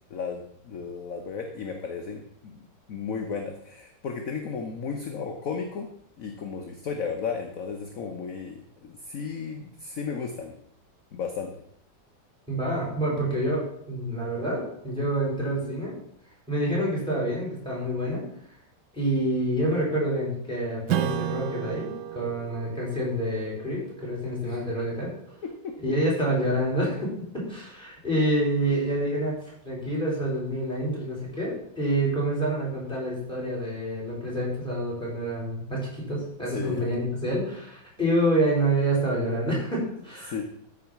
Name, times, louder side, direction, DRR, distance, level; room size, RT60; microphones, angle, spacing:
voice 1, 0.1-5.9 6.2-10.5 11.1-11.5 24.4-24.6 25.4-25.7 36.4-36.9 40.2-40.4, left 5 dB, 55° left, 4 dB, 1.3 m, -34 dB
voice 2, 12.5-15.9 16.5-18.2 18.9-25.1 25.8-40.4, right 1 dB, 5° left, -5 dB, 5.1 m, -27 dB
Strum, 20.9-25.8, right 13 dB, 85° right, 1.3 m, -34 dB
14.0 x 4.9 x 5.9 m, 0.69 s
omnidirectional pair, 1.9 m